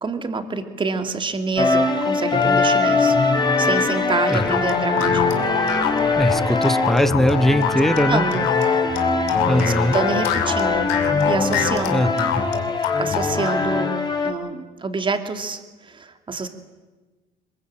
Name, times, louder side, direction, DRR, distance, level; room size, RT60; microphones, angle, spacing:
voice 1, 0.0-3.2 3.6-5.2 8.1-8.4 9.6-10.9 11.2-12.1 13.0-16.5, right 4 dB, 30° right, 7 dB, 2.7 m, -27 dB
sound 1, 1.6-14.3, left 3 dB, 25° left, 3.2 m, -22 dB
sound 2, 4.3-13.6, left 9 dB, 80° left, 2.6 m, -26 dB
voice 2, 6.1-8.2 9.5-9.9 11.9-12.4, left 1 dB, ahead, 11 dB, 1.3 m, -20 dB
22.0 x 20.5 x 8.9 m, 1.2 s
supercardioid pair, 90°, 17 cm